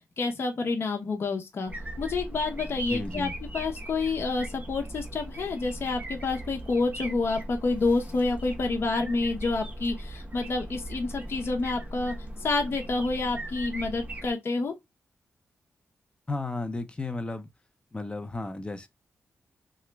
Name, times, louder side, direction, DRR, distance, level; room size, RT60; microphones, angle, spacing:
voice 1, 0.2-1.7 2.0-12.1 12.4-14.7, left 3 dB, 55° left, 0.7 m, -28 dB
sound 1, 1.7-14.3, right 1 dB, 30° right, 0.8 m, -39 dB
voice 2, 2.9-3.3 16.3-17.5 17.9-18.9, left 2 dB, 20° left, 0.6 m, -33 dB
2.9 x 2.3 x 3.2 m
cardioid pair, 95°, 5 cm